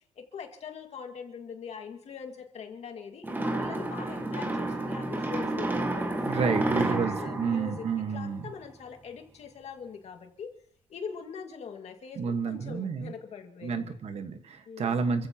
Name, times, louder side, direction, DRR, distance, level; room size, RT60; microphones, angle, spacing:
voice 1, 0.0-6.1 6.5-10.5 10.9-13.9 14.7-15.0, left 6 dB, 50° left, 4 dB, 2.1 m, -42 dB
sound 1, 3.2-8.6, right 2 dB, 15° right, 1.7 m, -31 dB
voice 2, 6.3-8.4 12.2-13.1 13.6-15.3, right 5 dB, 50° right, 8 dB, 1.4 m, -30 dB
28.0 x 15.5 x 2.9 m, 0.65 s
cardioid pair, 130°, 14 cm